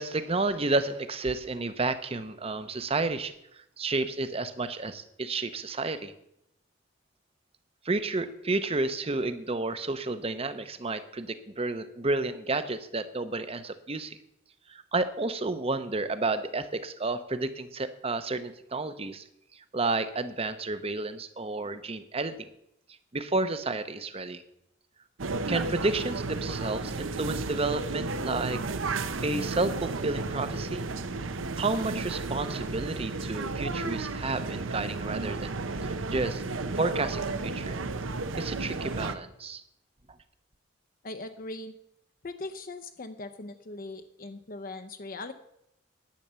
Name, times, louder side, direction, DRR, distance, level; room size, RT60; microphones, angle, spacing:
voice 1, 0.0-3.3 3.8-6.1 7.8-14.2 14.7-19.2 19.5-22.5 23.1-24.4 25.5-28.6 29.2-30.8 31.6-36.4 36.8-37.8 38.4-39.6, right 3 dB, 30° right, 12 dB, 0.8 m, -31 dB
sound 1, 25.2-39.2, right 3 dB, 80° right, 0.8 m, -33 dB
voice 2, 41.0-41.7 42.2-45.3, left 2 dB, 45° left, 8 dB, 0.7 m, -40 dB
10.5 x 9.2 x 6.9 m, 0.79 s
head